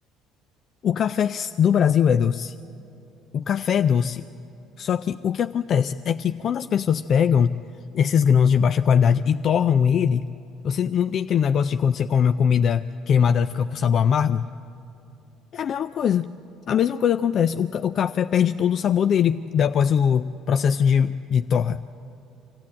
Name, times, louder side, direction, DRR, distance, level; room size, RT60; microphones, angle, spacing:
voice 1, 0.8-2.5 3.3-4.3 4.8-7.6 7.9-10.3 10.6-14.5 15.5-16.3 16.7-21.8, left 7 dB, 55° left, 11 dB, 0.4 m, -21 dB
25.5 x 15.0 x 8.6 m, 2.8 s
supercardioid pair, 70°, 0 cm